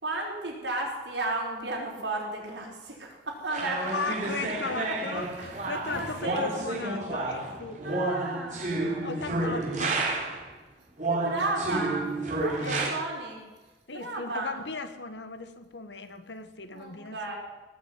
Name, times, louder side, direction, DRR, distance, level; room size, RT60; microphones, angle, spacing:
voice 1, 0.0-3.8 4.8-4.9 5.9-6.5 7.8-9.6 11.1-13.4 13.9-14.5 16.7-17.4, right 2 dB, 85° right, -2 dB, 5.1 m, -34 dB
sound 1, 3.5-10.5 11.0-12.9, right 2 dB, 45° right, 3.5 m, -30 dB
voice 2, 3.9-7.8 9.0-10.0 12.6-12.9 13.9-17.3, left 4 dB, 80° left, 10 dB, 1.4 m, -37 dB
18.5 x 6.7 x 9.5 m, 1.2 s
head